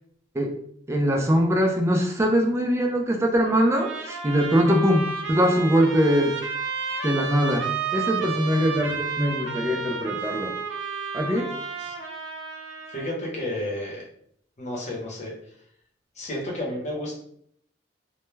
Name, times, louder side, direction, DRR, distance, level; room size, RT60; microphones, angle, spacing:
voice 1, 0.9-6.3 7.0-8.9 9.2-10.5 11.1-11.5, equal, 15° right, 2 dB, 0.3 m, -22 dB
Trumpet, 3.4-13.1, right 4 dB, 75° right, 0.5 m, -32 dB
voice 2, 12.9-14.0 14.6-15.3 16.2-17.1, left 1 dB, 35° left, -3 dB, 0.8 m, -31 dB
2.2 x 2.1 x 3.1 m, 0.67 s
head